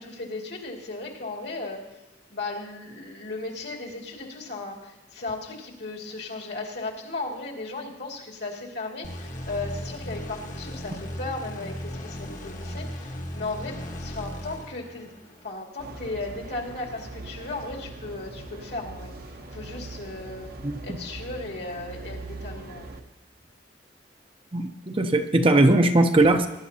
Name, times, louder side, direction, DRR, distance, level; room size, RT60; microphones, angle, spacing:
voice 1, 0.0-1.9 2.3-15.1 15.4-19.1 19.5-20.5 20.8-23.0, left 2 dB, 65° left, -1 dB, 2.4 m, -36 dB
sound 1, 9.0-15.5, equal, 45° left, 1.4 m, -37 dB
sound 2, 15.8-23.0, right 2 dB, 55° right, 1.0 m, -41 dB
voice 2, 24.5-26.5, right 2 dB, 30° right, 6 dB, 0.7 m, -19 dB
21.0 x 11.0 x 2.8 m, 0.96 s
head